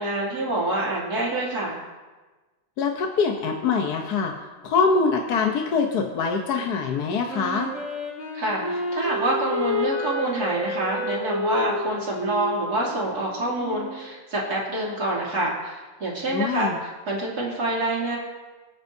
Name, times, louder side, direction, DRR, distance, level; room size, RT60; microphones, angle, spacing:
voice 1, 0.0-1.8 8.3-18.2, right 1 dB, 50° right, -5 dB, 3.2 m, -27 dB
voice 2, 2.8-4.3 4.6-7.7 16.3-16.8, left 5 dB, 60° left, 2 dB, 1.3 m, -24 dB
Wind instrument woodwind instrument, 7.3-14.0, left 1 dB, 75° left, 4.3 m, -30 dB
24.0 x 8.8 x 2.7 m, 1.3 s
omnidirectional pair, 2.1 m